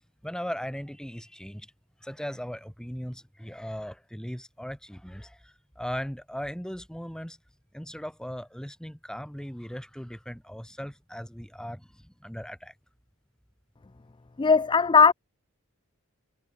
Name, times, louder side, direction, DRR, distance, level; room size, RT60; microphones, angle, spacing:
voice 1, 0.2-1.7 2.0-7.4 7.7-12.7, equal, 5° left, 2.9 m, -38 dB
voice 2, 14.4-15.1, left 5 dB, 20° left, 0.4 m, -18 dB
head